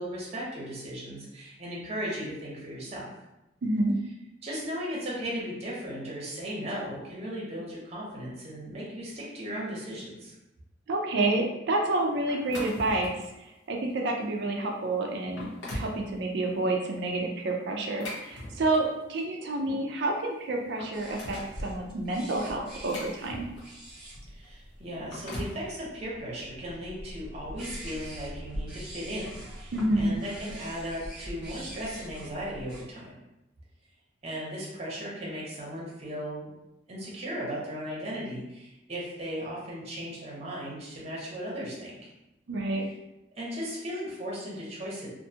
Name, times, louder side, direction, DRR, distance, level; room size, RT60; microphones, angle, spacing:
voice 1, 0.0-3.1 4.4-10.3 24.3-33.1 34.2-36.5 36.9-42.1 43.4-45.1, equal, 35° right, -5 dB, 0.8 m, -36 dB
voice 2, 3.6-4.0 10.9-15.5 15.7-23.5 29.7-30.1 42.5-42.8, right 2 dB, 60° right, 1 dB, 0.4 m, -29 dB
sound 1, 12.3-13.3 13.9-14.1 14.7-14.8 15.2-16.0 17.7-19.0 20.1-20.2 20.5-21.6 22.4-23.8 24.8-25.6, left 1 dB, 75° left, 0.7 m, -40 dB
sound 2, 20.9-32.8, equal, 5° right, 0.7 m, -43 dB
2.5 x 2.2 x 2.7 m, 0.93 s
head